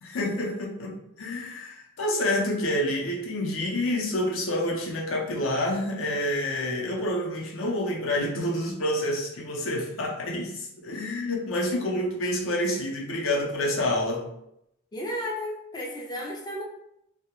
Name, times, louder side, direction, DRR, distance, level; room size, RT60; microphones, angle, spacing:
voice 1, 0.0-14.3, left 1 dB, 75° left, -1 dB, 0.5 m, -28 dB
voice 2, 14.9-16.6, equal, 20° left, -2 dB, 0.3 m, -33 dB
2.2 x 2.1 x 2.8 m, 0.79 s
head